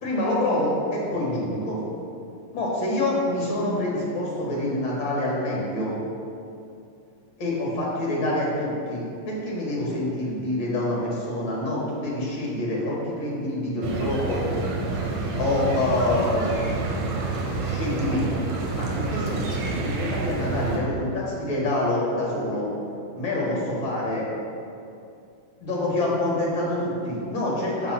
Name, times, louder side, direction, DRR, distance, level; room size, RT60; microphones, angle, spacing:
voice 1, 0.0-1.8 2.5-6.0 7.4-14.5 15.4-16.5 17.6-18.3 18.7-22.7 23.1-24.3 25.6-27.9, left 1 dB, 70° left, -4 dB, 2.4 m, -26 dB
sound 1, 13.8-20.8, right 3 dB, 70° right, 1.8 m, -28 dB
7.3 x 4.0 x 5.8 m, 2.6 s
omnidirectional pair, 2.2 m